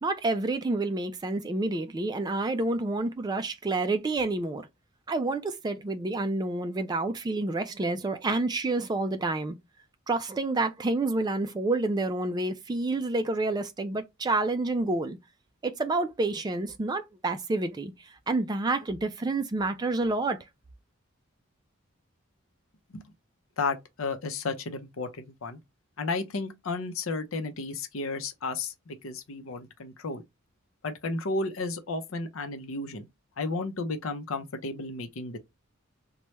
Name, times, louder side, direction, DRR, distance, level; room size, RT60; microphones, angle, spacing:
voice 1, 0.0-4.7 5.1-9.6 10.1-15.2 15.6-17.9 18.3-20.4, right 2 dB, 20° right, 0.3 m, -28 dB
voice 2, 23.6-25.6 26.0-30.2 30.8-33.1 33.4-35.4, left 3 dB, 75° left, 0.6 m, -33 dB
3.1 x 2.2 x 2.8 m
head